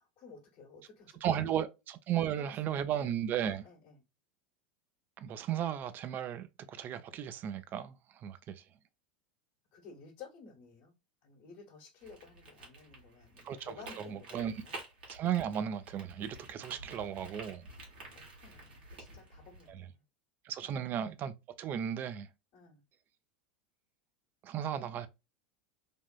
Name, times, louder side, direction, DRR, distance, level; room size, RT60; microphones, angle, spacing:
voice 1, 0.0-1.6 2.1-2.3 2.7-2.8 3.6-4.0 9.7-10.9 11.2-14.8 16.7-16.8 18.1-20.0 20.6-20.9 22.5-22.8, left 5 dB, 50° left, 1.2 m, -54 dB
voice 2, 1.2-3.6 5.2-8.6 13.4-14.5 15.1-17.7 19.7-19.8 20.4-22.3 24.4-25.1, right 9 dB, 40° right, 0.5 m, -35 dB
sound 1, 12.0-19.7, right 2 dB, 75° right, 1.5 m, -50 dB
3.5 x 2.5 x 2.3 m
hypercardioid pair, 85°, 5 cm